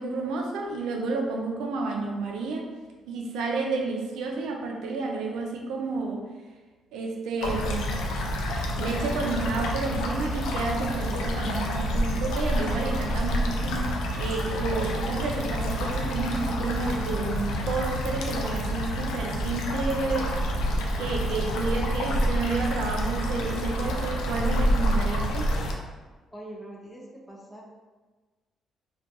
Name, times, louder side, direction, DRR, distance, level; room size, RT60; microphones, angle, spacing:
voice 1, 0.0-2.7 3.1-6.2 6.9-7.9 8.8-20.3 21.0-25.5, right 3 dB, 90° right, 1 dB, 0.4 m, -30 dB
sound 1, 7.4-25.7, equal, 90° left, 0.3 m, -28 dB
voice 2, 26.3-27.7, right 1 dB, 10° left, -3 dB, 0.6 m, -43 dB
2.4 x 2.2 x 2.8 m, 1.3 s
cardioid pair, 90°, 0 cm